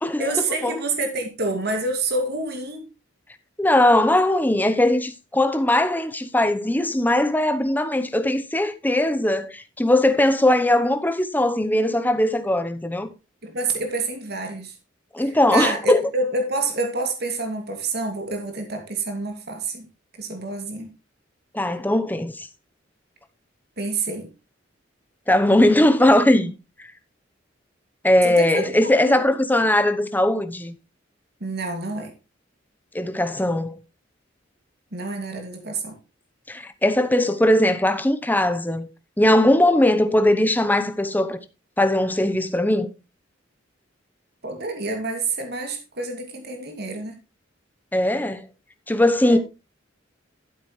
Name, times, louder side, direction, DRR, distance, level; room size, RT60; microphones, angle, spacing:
voice 1, 0.2-2.8 13.4-14.7 15.2-19.9 20.2-20.9 23.8-24.3 28.2-29.3 31.4-32.1 34.9-36.0 44.4-47.2 49.3-49.4, right 3 dB, 55° right, 2.6 m, -28 dB
voice 2, 3.6-13.1 15.1-16.0 21.5-22.5 25.3-26.5 28.0-30.7 32.9-33.8 36.5-38.9 39.2-41.4 41.8-42.9 47.9-48.4 48.9-49.4, left 1 dB, 10° left, 0.9 m, -19 dB
12.5 x 8.3 x 3.2 m
head